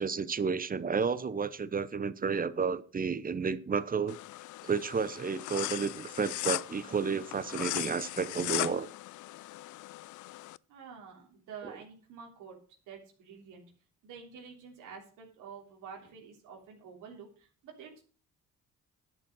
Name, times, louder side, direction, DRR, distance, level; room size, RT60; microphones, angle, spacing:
voice 1, 0.0-4.2 4.6-8.9 11.6-11.8, right 5 dB, 30° right, 0.9 m, -31 dB
sound 1, 4.1-10.6, left 17 dB, 75° left, 0.5 m, -38 dB
voice 2, 10.7-12.6 12.9-13.6 14.0-18.0, right 6 dB, 90° right, 3.4 m, -48 dB
11.0 x 7.6 x 6.2 m
cardioid pair, 90°, 30 cm